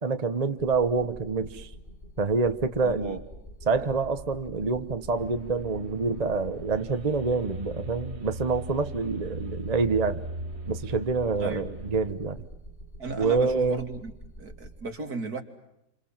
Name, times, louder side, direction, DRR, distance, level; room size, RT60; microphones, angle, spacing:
voice 1, 0.0-1.7 2.2-3.2 3.7-10.2 10.7-12.4 13.2-13.8, right 4 dB, 25° right, 9 dB, 1.1 m, -27 dB
sound 1, 0.6-14.8, right 1 dB, 25° left, 4.0 m, -45 dB
voice 2, 2.8-3.2 3.8-4.0 11.4-11.7 13.0-14.1 14.4-15.4, right 3 dB, 65° right, 5 dB, 3.0 m, -35 dB
sound 2, 5.1-12.1, right 1 dB, 45° right, 1.7 m, -40 dB
29.0 x 27.5 x 7.4 m, 0.83 s
omnidirectional pair, 1.7 m